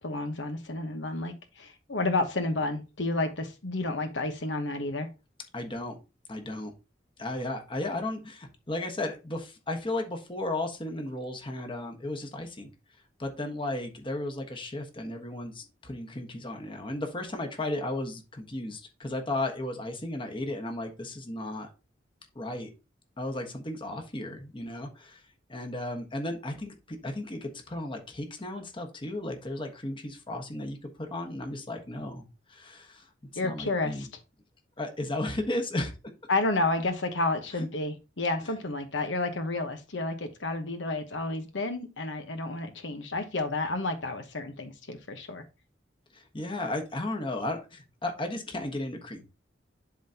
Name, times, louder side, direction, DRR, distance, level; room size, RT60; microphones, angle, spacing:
voice 1, 0.0-5.1 33.4-34.1 36.3-45.4, left 2 dB, 80° left, 1.1 m, -31 dB
voice 2, 5.5-5.9 6.3-6.7 7.2-12.7 13.2-21.7 22.3-22.7 23.2-25.2 25.5-33.1 33.4-34.1 34.8-35.9 46.1-49.2, left 1 dB, 30° left, 1.3 m, -34 dB
11.5 x 3.9 x 2.8 m
head